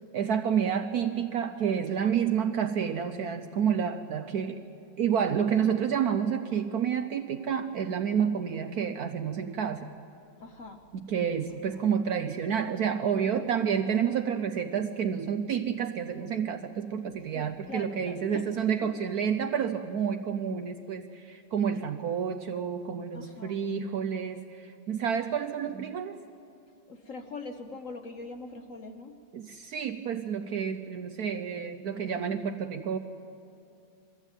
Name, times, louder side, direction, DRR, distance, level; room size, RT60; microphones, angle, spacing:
voice 1, 0.1-4.6 5.0-9.9 10.9-26.2 29.3-33.0, right 7 dB, 65° right, 8 dB, 1.0 m, -29 dB
voice 2, 10.4-10.8 13.2-13.6 17.3-18.5 18.8-18.9 23.1-23.6 26.9-29.2, left 3 dB, 55° left, 6 dB, 1.0 m, -42 dB
21.5 x 14.5 x 9.0 m, 2.7 s
omnidirectional pair, 2.2 m